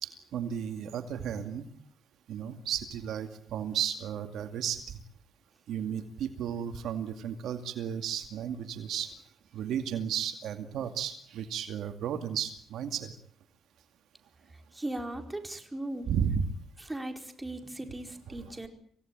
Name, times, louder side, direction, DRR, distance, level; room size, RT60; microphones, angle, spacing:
voice 1, 0.0-1.7 2.3-5.0 5.7-9.1 9.5-13.1 16.1-16.5 18.3-18.4, right 8 dB, 75° right, 7 dB, 2.4 m, -34 dB
voice 2, 14.7-16.1 16.8-18.7, right 1 dB, 15° right, 5 dB, 4.6 m, -38 dB
26.5 x 18.0 x 9.0 m, 0.64 s
cardioid pair, 90°, 0 cm